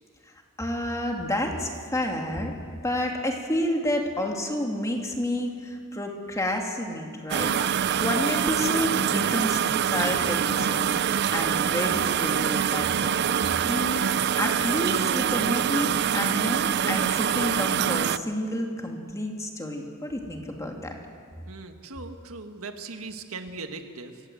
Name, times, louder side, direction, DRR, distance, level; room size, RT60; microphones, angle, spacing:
voice 1, 0.6-2.5 2.8-13.2 13.6-14.0 14.4-20.9, left 1 dB, 15° left, 1 dB, 2.4 m, -30 dB
sound 1, 7.3-18.2, right 8 dB, 50° right, 0.5 m, -25 dB
voice 2, 21.5-24.2, right 3 dB, 90° right, 6 dB, 1.6 m, -39 dB
25.5 x 16.5 x 7.8 m, 2.2 s
head